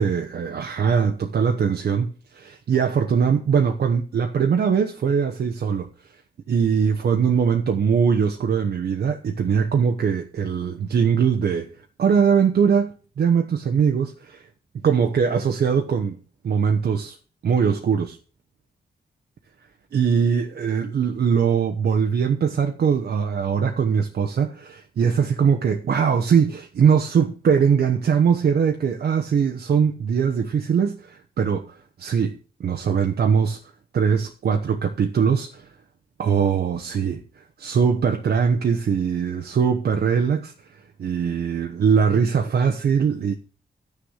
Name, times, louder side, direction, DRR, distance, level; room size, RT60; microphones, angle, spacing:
voice 1, 0.0-5.9 6.5-11.7 12.0-14.4 14.8-16.2 16.4-17.1 17.4-18.2 19.9-33.6 33.9-35.7 36.2-43.3, right 6 dB, 75° right, 1.1 m, -21 dB
11.5 x 6.6 x 6.5 m
wide cardioid pair, 140°, 17 cm